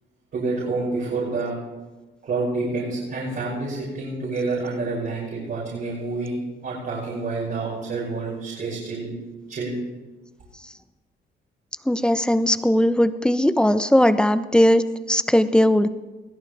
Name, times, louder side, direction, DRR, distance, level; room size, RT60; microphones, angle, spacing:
voice 1, 0.3-1.6 2.2-6.4 6.6-9.1 9.5-9.8, right 3 dB, 55° right, -8 dB, 6.9 m, -28 dB
voice 2, 11.9-15.9, left 1 dB, 5° left, 12 dB, 0.8 m, -19 dB
21.5 x 16.5 x 3.5 m, 1.2 s
cardioid pair, 90°, 20 cm